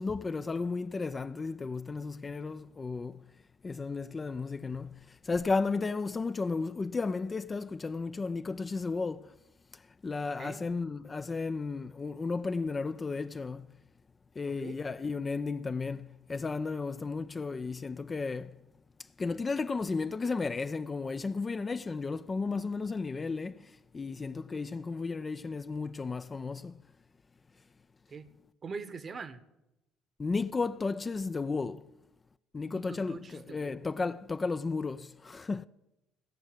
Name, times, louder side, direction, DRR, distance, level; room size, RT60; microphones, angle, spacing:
voice 1, 0.0-3.3 3.6-9.3 9.7-13.7 14.4-18.5 19.2-26.8 30.2-31.9 32.5-35.7, left 4 dB, 30° left, 0.4 m, -34 dB
voice 2, 10.4-10.7 14.4-14.8 28.1-28.3 28.6-29.4 32.7-33.9, right 5 dB, 40° right, 1.0 m, -43 dB
17.0 x 6.5 x 6.6 m
hypercardioid pair, 55°, 0 cm